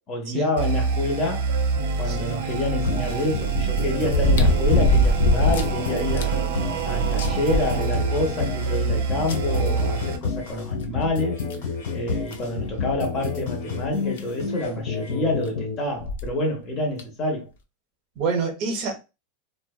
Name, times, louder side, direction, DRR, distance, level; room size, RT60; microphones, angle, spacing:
voice 1, 0.0-1.5 2.0-6.3 6.8-11.4 11.9-17.5, left 1 dB, 30° left, 0.7 m, -27 dB
sound 1, 0.6-10.2, right 6 dB, 85° right, 0.5 m, -26 dB
sound 2, 2.1-2.2 4.0-5.8 6.2-6.3 6.7-6.8 7.2-8.3 9.3-9.4 10.8-10.9 11.5-11.6 12.3-12.5 13.9-14.0 14.2-14.3 16.0-16.3 17.0-17.1, left 1 dB, 85° left, 0.5 m, -20 dB
sound 3, 2.8-15.8, left 5 dB, 65° left, 1.2 m, -30 dB
voice 2, 18.2-19.0, right 5 dB, 40° right, 0.7 m, -26 dB
2.5 x 2.1 x 2.3 m
supercardioid pair, 160°, 0 cm